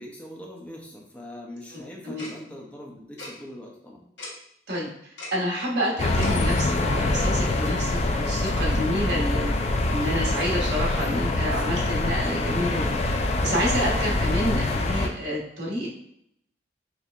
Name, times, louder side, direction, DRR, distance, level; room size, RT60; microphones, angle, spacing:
voice 1, 0.0-4.1, left 1 dB, 10° left, -2 dB, 0.7 m, -42 dB
voice 2, 1.7-2.2 4.7-4.9 5.3-9.5 9.9-16.0, equal, 70° right, -3 dB, 1.2 m, -29 dB
Tick-tock, 2.2-2.3 3.2-3.3 4.2-4.3 5.2-5.3 6.2-6.3, left 2 dB, 80° left, 1.2 m, -37 dB
sound 1, 6.0-15.1, left 2 dB, 35° left, 0.4 m, -25 dB
4.4 x 3.1 x 2.5 m, 0.73 s
head